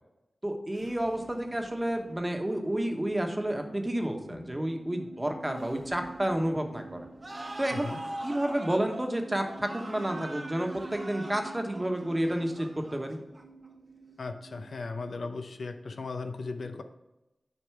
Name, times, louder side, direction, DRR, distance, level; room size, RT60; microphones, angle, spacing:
voice 1, 0.4-7.0 7.6-7.9 8.2-13.2, right 1 dB, 20° right, 4 dB, 1.2 m, -30 dB
sound 1, 0.6-16.1, right 3 dB, 75° right, 0.9 m, -48 dB
sound 2, 7.2-13.7, right 1 dB, 35° right, 1.0 m, -42 dB
voice 2, 7.7-8.0 14.2-16.8, left 3 dB, 80° left, 7 dB, 0.7 m, -37 dB
8.2 x 5.2 x 4.6 m, 0.96 s
wide cardioid pair, 75°, 0 cm